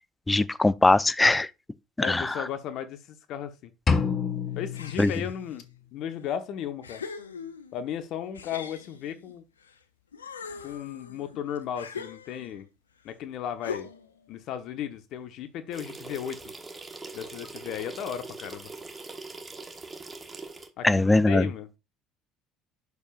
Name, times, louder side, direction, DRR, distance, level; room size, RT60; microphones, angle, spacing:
voice 1, 0.3-1.5 2.0-2.4 5.0-5.1 20.8-21.5, left 2 dB, 10° left, 0.5 m, -21 dB
voice 2, 2.0-3.7 4.6-5.6 5.9-7.0 7.7-9.4 10.6-12.7 13.0-13.9 14.3-16.5 17.1-18.7 20.8-21.7, left 9 dB, 55° left, 0.9 m, -35 dB
sound 1, 3.9-5.8, left 5 dB, 35° left, 1.4 m, -28 dB
sound 2, 4.7-5.6 6.2-6.3 6.8-7.8 8.4-9.8 10.1-12.7 13.6-14.2, left 6 dB, 85° left, 0.6 m, -41 dB
sound 3, 15.7-20.7, right 3 dB, 20° right, 1.3 m, -42 dB
8.2 x 6.5 x 2.5 m
figure-of-eight pair, 60°, 0 cm